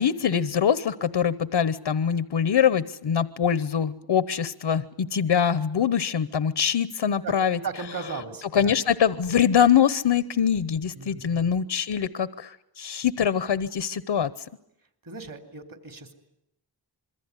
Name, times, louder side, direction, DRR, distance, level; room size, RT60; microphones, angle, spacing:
voice 1, 0.0-7.6 8.5-14.3, left 8 dB, 80° left, 15 dB, 1.0 m, -23 dB
voice 2, 7.2-8.7 11.0-11.5 15.0-16.2, right 5 dB, 50° right, 7 dB, 3.7 m, -37 dB
27.0 x 22.5 x 9.9 m, 0.81 s
wide cardioid pair, 90°, 44 cm